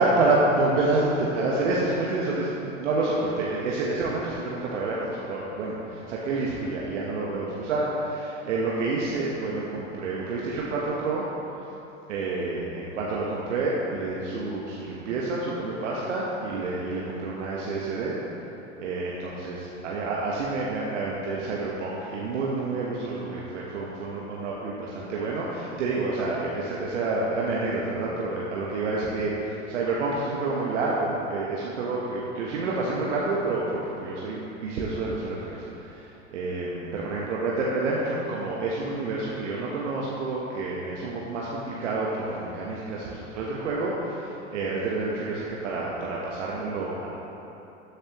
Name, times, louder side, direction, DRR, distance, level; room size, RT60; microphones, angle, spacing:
voice 1, 0.0-11.3 11.5-11.6 12.1-18.1 18.8-47.1, right 3 dB, 70° right, -5 dB, 1.3 m, -28 dB
13.0 x 6.7 x 3.1 m, 3.0 s
hypercardioid pair, 85°, 38 cm